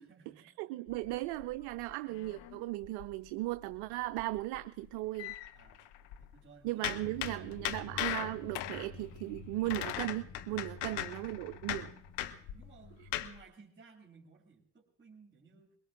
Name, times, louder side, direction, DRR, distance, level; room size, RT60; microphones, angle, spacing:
voice 1, 0.0-0.9 5.5-5.8 6.2-7.9 10.8-11.1 11.5-11.8 12.2-15.8, right 5 dB, 25° right, -4 dB, 2.5 m, -59 dB
voice 2, 0.6-5.3 6.6-11.9 13.0-13.1, right 19 dB, 55° right, 14 dB, 0.5 m, -37 dB
sound 1, 0.9-3.3 3.6-3.8 4.1-6.3 6.8-13.4, left 13 dB, 60° left, 0.9 m, -39 dB
sound 2, 7.0-13.2, left 4 dB, 40° left, 1.4 m, -51 dB
22.5 x 21.5 x 2.5 m, 0.73 s
figure-of-eight pair, 55°, 47 cm